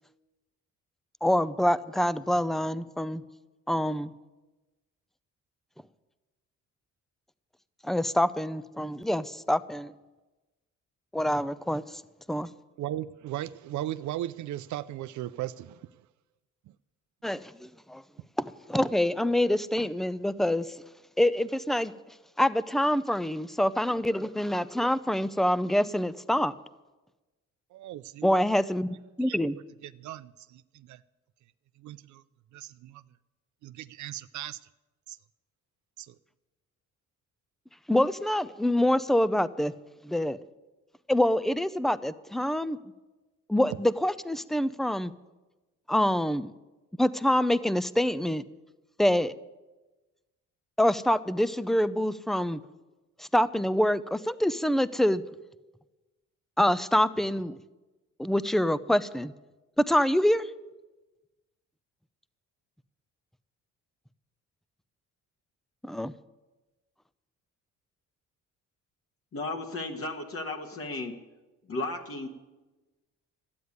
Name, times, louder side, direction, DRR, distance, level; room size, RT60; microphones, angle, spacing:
voice 1, 1.2-3.2 3.7-4.1 7.8-9.9 11.1-12.0 12.3-12.5 17.2-18.0 18.4-20.7 21.2-21.9 22.4-26.5 28.2-28.9 29.2-29.6 37.9-39.7 40.0-40.4 41.1-42.8 43.5-45.1 45.9-46.5 47.0-48.4 49.0-49.3 50.8-52.6 53.2-55.2 56.6-57.6 58.2-59.3 59.8-60.5 65.8-66.1, left 1 dB, ahead, 16 dB, 0.5 m, -26 dB
voice 2, 12.8-15.8 27.7-28.4 29.3-29.4 29.8-31.0 31.8-32.2 32.5-33.0 33.6-34.6 35.1-35.2 36.0-36.2, right 13 dB, 75° right, 13 dB, 0.5 m, -37 dB
voice 3, 69.3-71.2 71.7-72.3, left 2 dB, 45° left, 3 dB, 1.6 m, -34 dB
12.5 x 9.5 x 9.6 m, 1.1 s
cardioid pair, 90°, 30 cm